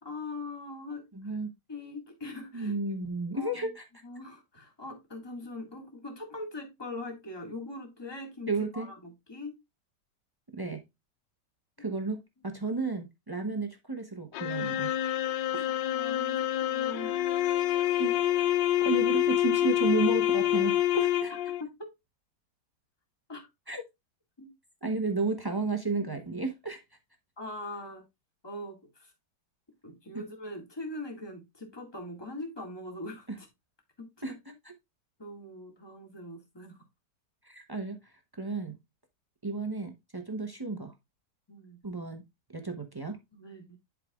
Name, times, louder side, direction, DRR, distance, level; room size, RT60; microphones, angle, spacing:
voice 1, 0.0-1.3 1.7-2.8 3.3-3.7 4.0-9.5 11.8-12.0 15.8-17.1 18.3-18.4 21.6-21.9 23.3-23.5 24.4-24.5 27.4-28.1 28.4-29.1 29.8-33.5 34.0-34.1 35.2-36.8 41.5-41.8 43.3-43.8, left 2 dB, 15° left, 1.7 m, -42 dB
voice 2, 1.1-1.5 2.5-3.8 8.5-8.9 10.5-10.8 11.8-14.9 15.5-15.7 18.0-18.2 18.8-21.3 23.7-23.8 24.8-26.8 30.1-30.2 34.2-34.3 34.6-34.7 37.4-38.8 39.4-40.9 41.8-42.2 42.5-43.2, right 3 dB, 35° right, 0.3 m, -32 dB
sound 1, 14.3-21.6, left 13 dB, 90° left, 1.3 m, -27 dB
10.5 x 4.8 x 2.3 m
omnidirectional pair, 1.9 m